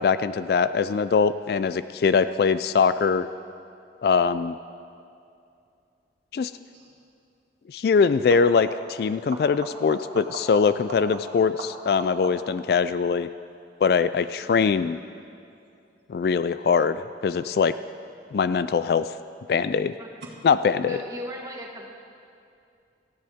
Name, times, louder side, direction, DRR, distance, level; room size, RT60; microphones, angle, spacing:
voice 1, 0.0-3.3 4.0-4.6 6.3-6.5 7.7-13.3 13.8-15.0 16.1-17.7 18.3-19.1 19.5-19.9 20.4-21.0, left 5 dB, 55° left, 13 dB, 0.3 m, -22 dB
sound 1, 6.7-7.0 8.2-9.0 9.3-12.7 18.1-18.7 20.2-20.3, right 2 dB, 80° right, 2.0 m, -40 dB
voice 2, 20.9-21.9, equal, 20° right, -1 dB, 1.5 m, -37 dB
17.5 x 14.0 x 3.6 m, 2.5 s
head